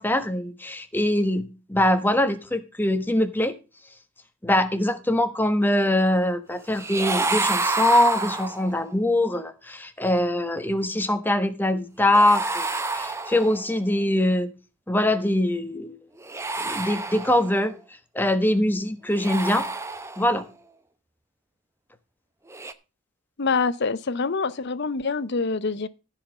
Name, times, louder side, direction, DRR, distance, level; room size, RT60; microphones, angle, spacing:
voice 1, 0.0-3.5 4.4-14.5 14.9-16.0 16.6-17.7 18.1-19.6 20.2-20.4, left 1 dB, 10° left, 1.2 m, -23 dB
sound 1, 6.7-8.9 12.1-13.8 16.2-17.7 19.1-20.4 22.5-22.7, right 3 dB, 15° right, 0.7 m, -29 dB
voice 2, 23.4-25.9, left 4 dB, 55° left, 0.7 m, -25 dB
14.5 x 5.0 x 6.5 m
head